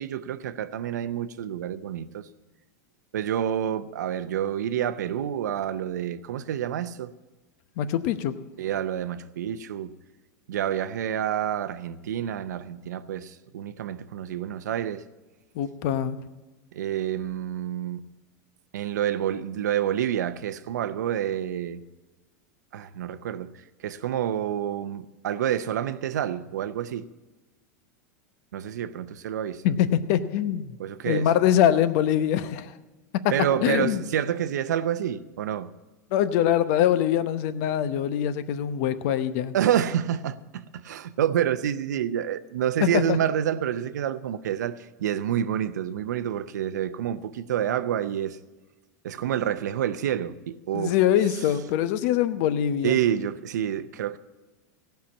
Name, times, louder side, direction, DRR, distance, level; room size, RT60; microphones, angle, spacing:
voice 1, 0.0-2.3 3.1-7.1 8.6-9.9 10.5-15.1 16.7-18.1 18.7-21.8 22.7-27.1 28.5-29.6 30.8-31.3 33.3-35.7 39.5-48.4 49.0-51.0 52.8-54.2, right 10 dB, 85° right, 0.7 m, -28 dB
voice 2, 7.8-8.3 15.5-16.2 29.6-30.8 31.1-32.8 33.1-33.2 33.6-34.0 36.1-39.5 42.9-43.2 50.7-53.0, left 10 dB, 60° left, 0.8 m, -23 dB
16.5 x 5.8 x 8.5 m
hypercardioid pair, 115°, 9 cm